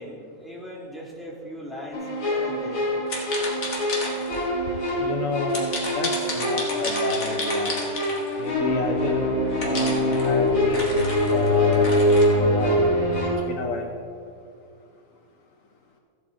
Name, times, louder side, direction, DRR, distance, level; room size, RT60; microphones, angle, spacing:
voice 1, 0.0-2.9, equal, ahead, -4 dB, 1.7 m, -39 dB
sound 1, 1.9-13.3, left 1 dB, 65° left, 2.8 m, -24 dB
sound 2, 3.1-4.4 5.5-8.5 9.6-12.2, left 2 dB, 40° left, 1.9 m, -32 dB
voice 2, 5.0-7.8 8.4-11.0 11.3-12.0 12.4-13.0 13.5-14.0, left 3 dB, 85° left, 3 dB, 0.7 m, -30 dB
15.5 x 7.9 x 3.7 m, 2.4 s
omnidirectional pair, 2.3 m